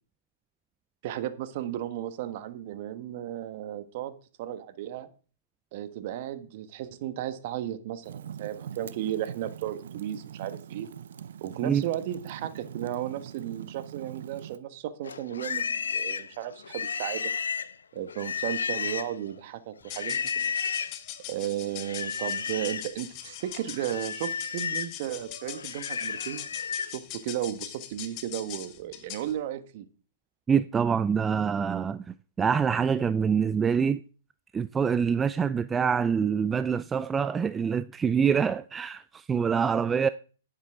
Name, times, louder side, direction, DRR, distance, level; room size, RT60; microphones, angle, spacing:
voice 1, 1.0-4.1 4.4-5.1 5.7-10.9 11.4-17.3 17.9-20.5 21.3-26.5 26.9-29.8, right 12 dB, 50° right, 1.3 m, -34 dB
Fire, 8.0-14.6, right 9 dB, 65° right, 0.7 m, -42 dB
Livestock farm animals working animals, 15.0-19.3 19.9-21.0 21.8-22.9 23.3-27.0, left 6 dB, 80° left, 0.7 m, -33 dB
sound 1, 19.8-29.4, left 12 dB, 35° left, 1.5 m, -42 dB
voice 2, 30.5-34.0 34.5-40.1, right 6 dB, 15° right, 0.4 m, -25 dB
11.0 x 10.5 x 3.7 m
hypercardioid pair, 120°, 0 cm